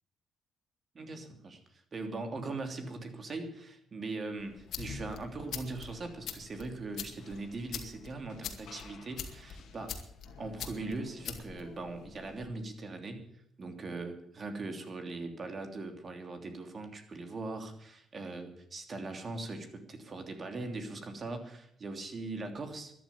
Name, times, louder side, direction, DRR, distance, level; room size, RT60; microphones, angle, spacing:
voice 1, 0.9-9.9 10.4-13.2 13.6-22.9, right 3 dB, 40° right, 6 dB, 3.0 m, -40 dB
sound 1, 4.4-12.5, left 7 dB, 70° left, 2.2 m, -44 dB
13.0 x 10.5 x 8.5 m, 0.69 s
cardioid pair, 90°, 0 cm